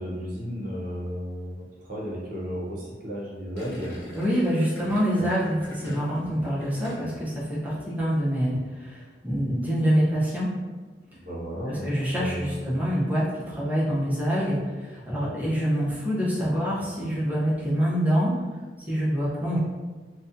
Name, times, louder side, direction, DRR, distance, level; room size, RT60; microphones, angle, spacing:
voice 1, 0.0-4.0 5.2-5.3 5.8-6.0 11.1-11.9 12.1-12.7, equal, 50° right, -5 dB, 0.7 m, -34 dB
Gurgling, 3.5-7.3 7.6-8.0, equal, 75° left, 0.9 m, -43 dB
voice 2, 4.1-10.5 11.7-18.3 18.9-19.6, equal, 10° right, -8 dB, 0.6 m, -26 dB
2.5 x 2.2 x 2.6 m, 1.3 s
head